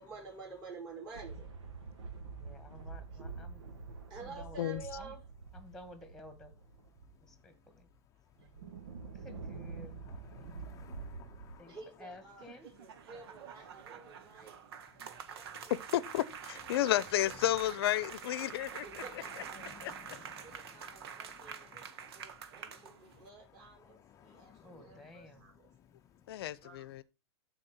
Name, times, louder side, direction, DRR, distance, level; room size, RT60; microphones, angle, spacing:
voice 1, 0.0-1.5 3.1-3.2 4.1-5.2 8.4-8.5 11.7-14.6 15.3-16.0 16.7-17.4 18.4-19.7 20.4-25.7 26.6-26.9, right 4 dB, 30° right, 5.5 m, -51 dB
sound 1, 1.1-7.3 7.8-7.9 8.4-11.5, right 4 dB, 80° right, 1.9 m, -46 dB
voice 2, 2.4-3.6 4.2-5.1 5.5-6.5 7.4-7.9 8.4-8.6 9.1-9.9 10.2-10.5 11.6-12.7 24.6-25.5, left 1 dB, 5° left, 1.8 m, -53 dB
voice 3, 10.1-11.7 19.7-20.6 20.9-21.5 24.1-24.7, left 8 dB, 20° left, 0.7 m, -57 dB
sound 2, 12.3-23.3, right 8 dB, 60° right, 1.2 m, -47 dB
voice 4, 15.9-18.8 19.8-19.9 26.3-27.0, left 13 dB, 60° left, 0.8 m, -32 dB
13.0 x 4.4 x 4.3 m
hypercardioid pair, 135°, 14 cm